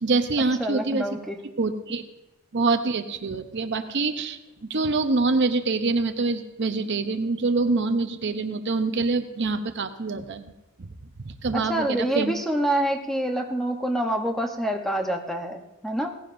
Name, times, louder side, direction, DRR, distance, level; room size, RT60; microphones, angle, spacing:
voice 1, 0.0-1.0 1.6-2.0 2.5-10.5 10.8-10.9 11.2-12.3, right 3 dB, 55° right, 8 dB, 0.7 m, -25 dB
voice 2, 0.6-1.4 11.5-16.2, right 1 dB, ahead, 3 dB, 0.8 m, -27 dB
18.0 x 15.0 x 2.6 m, 1.0 s
head